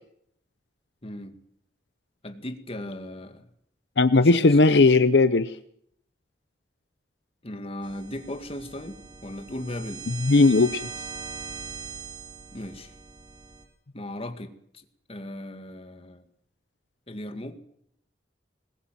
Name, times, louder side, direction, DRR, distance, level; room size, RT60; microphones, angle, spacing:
voice 1, 1.0-1.4 2.2-3.5 4.1-4.6 7.4-10.1 12.5-12.9 13.9-16.3 17.1-17.6, left 1 dB, 35° left, 2.1 m, -37 dB
voice 2, 4.0-5.5 10.2-10.8, left 3 dB, 75° left, 0.8 m, -17 dB
sound 1, 7.8-13.6, right 6 dB, 25° right, 3.2 m, -41 dB
21.0 x 20.5 x 7.6 m
head